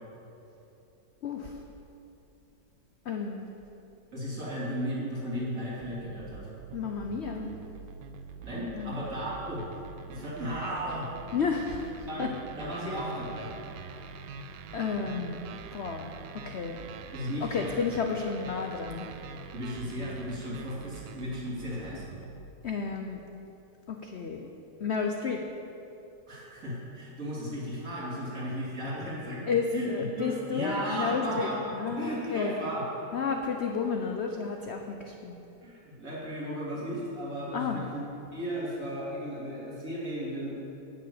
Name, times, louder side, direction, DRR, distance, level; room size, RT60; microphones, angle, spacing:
voice 1, 1.2-1.6 3.0-3.5 6.7-7.5 8.7-9.0 11.3-12.3 13.9-14.1 14.7-15.4 15.7-16.8 17.4-19.1 22.6-23.2 23.9-24.5 24.8-25.4 29.5-32.6 33.1-35.4 37.5-37.9, left 5 dB, 70° left, 3 dB, 0.6 m, -32 dB
voice 2, 4.1-6.5 8.4-9.6 10.1-11.1 12.0-12.3 12.6-13.5 17.1-17.8 19.5-22.0 26.3-29.4 29.7-31.6 32.0-32.9 33.2-33.3 35.6-38.0 38.3-40.7, equal, 45° right, -7 dB, 3.3 m, -35 dB
sound 1, 5.8-22.5, right 5 dB, 85° right, 1.4 m, -45 dB
10.5 x 6.7 x 8.6 m, 2.9 s
omnidirectional pair, 2.0 m